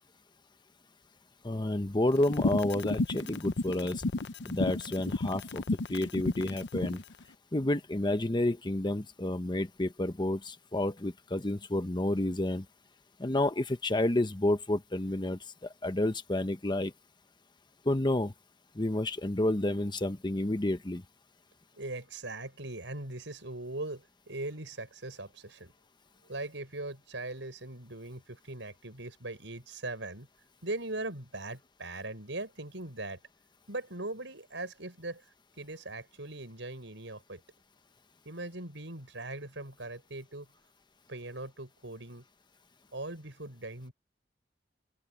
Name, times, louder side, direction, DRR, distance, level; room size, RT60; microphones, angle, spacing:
voice 1, 1.4-4.0 4.4-5.6 5.9-7.0 7.5-12.6 13.2-15.4 15.8-16.9 17.9-18.3 18.8-21.0, left 1 dB, 25° left, 1.0 m, -30 dB
sound 1, 2.2-7.0, left 2 dB, 70° left, 0.7 m, -32 dB
voice 2, 21.7-25.7 26.2-30.3 30.6-33.2 33.7-35.2 35.6-37.4 38.3-40.5 41.1-42.2 42.9-43.9, right 2 dB, 80° right, 7.1 m, -40 dB
open air
head